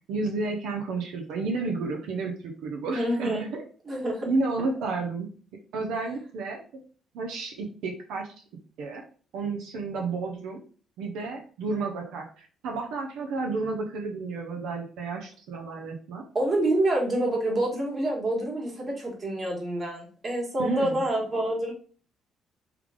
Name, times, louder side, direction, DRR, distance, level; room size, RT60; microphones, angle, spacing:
voice 1, 0.1-3.6 4.3-5.3 5.7-6.6 7.1-8.3 8.8-9.0 9.3-10.6 11.0-16.2 20.6-21.0, right 3 dB, 90° right, 1 dB, 0.8 m, -31 dB
voice 2, 2.9-3.4 3.9-4.3 4.8-4.9 16.3-21.7, right 1 dB, 35° right, -2 dB, 1.6 m, -27 dB
3.4 x 3.3 x 3.5 m, 0.41 s
cardioid pair, 125°, 0 cm